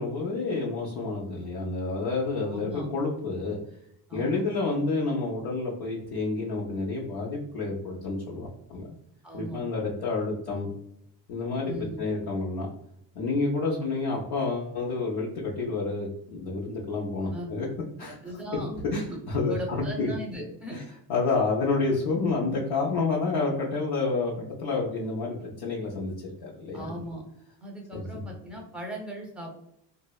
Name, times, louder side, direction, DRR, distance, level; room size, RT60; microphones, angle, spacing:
voice 1, 0.0-3.6 4.1-8.9 9.3-10.7 11.3-12.7 13.1-17.7 18.0-18.2 18.7-19.5 20.0-20.1 20.7-20.8 21.1-26.1 26.4-27.0 27.9-28.2, left 3 dB, 65° left, -5 dB, 0.7 m, -29 dB
voice 2, 2.4-2.9 4.1-4.4 9.2-9.6 10.0-10.1 11.6-12.0 13.6-13.8 17.3-17.5 18.0-20.8 22.2-22.4 26.7-27.2 27.6-29.5, equal, ahead, -1 dB, 0.7 m, -38 dB
2.6 x 2.1 x 2.3 m, 0.78 s
supercardioid pair, 90°, 45 cm